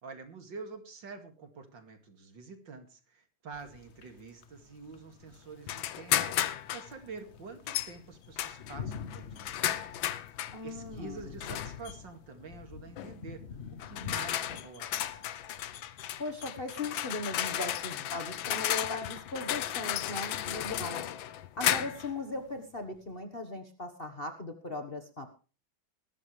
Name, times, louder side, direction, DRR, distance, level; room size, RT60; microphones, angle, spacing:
voice 1, 0.0-9.9 10.3-10.4 10.6-13.6 13.9-15.3, right 4 dB, 70° right, 7 dB, 3.0 m, -47 dB
sound 1, 3.5-23.2, left 7 dB, 50° left, 0.8 m, -49 dB
sound 2, 5.7-6.9 7.7-7.9 8.4-10.6 11.4-11.9 13.0-13.2 13.8-22.1, left 12 dB, 80° left, 1.6 m, -34 dB
voice 2, 10.5-11.3 16.2-21.0 21.6-25.3, left 2 dB, 30° left, 5 dB, 1.4 m, -38 dB
20.0 x 12.0 x 3.3 m, 0.34 s
omnidirectional pair, 2.1 m